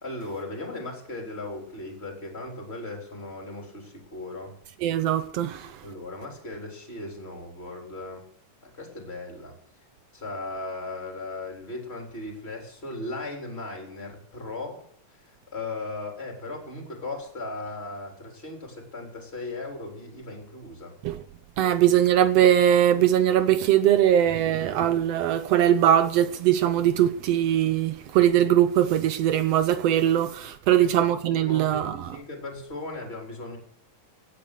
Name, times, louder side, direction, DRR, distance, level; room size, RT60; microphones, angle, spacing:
voice 1, 0.0-4.6 5.8-8.2 8.6-9.5 10.1-14.8 15.1-21.0 21.6-21.8 30.8-30.9 31.3-33.6, left 2 dB, 20° left, 3.7 m, -37 dB
voice 2, 4.8-5.8 21.0-21.2 21.6-32.1, right 11 dB, 75° right, 1.5 m, -21 dB
17.5 x 9.2 x 6.6 m
omnidirectional pair, 3.7 m